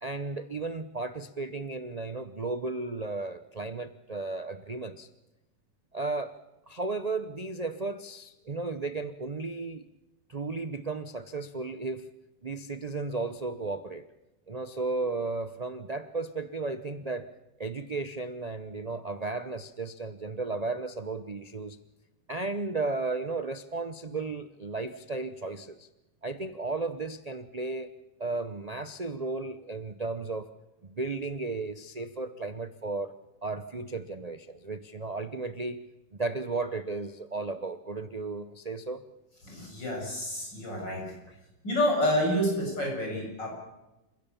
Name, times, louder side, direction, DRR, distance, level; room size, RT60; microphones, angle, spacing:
voice 1, 0.0-5.1 5.9-6.4 6.7-9.8 10.3-12.1 12.4-14.1 14.5-17.3 17.6-21.8 22.3-25.9 26.2-27.9 28.2-30.5 30.8-33.1 33.4-35.8 36.1-39.0, right 3 dB, 40° right, 10 dB, 0.5 m, -34 dB
voice 2, 39.4-41.1 41.6-43.5, equal, 75° left, 0 dB, 8.8 m, -28 dB
28.5 x 16.0 x 7.0 m, 0.97 s
omnidirectional pair, 2.0 m